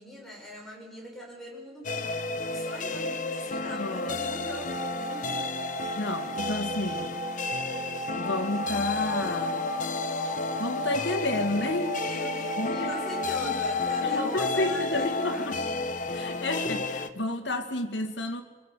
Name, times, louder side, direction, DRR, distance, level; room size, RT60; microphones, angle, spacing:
voice 1, 0.0-2.2 2.5-5.3 12.0-16.0, equal, ahead, -3 dB, 7.4 m, -41 dB
sound 1, 1.8-17.1, left 4 dB, 45° left, 1.2 m, -32 dB
voice 2, 3.7-4.1 6.0-7.1 8.2-9.6 10.6-12.0 12.6-12.9 13.4-13.6 14.0-15.6 16.1-18.4, left 2 dB, 70° left, 6 dB, 2.3 m, -31 dB
sound 2, 4.4-15.4, right 3 dB, 20° right, 1.4 m, -37 dB
27.5 x 20.0 x 8.5 m, 1.3 s
head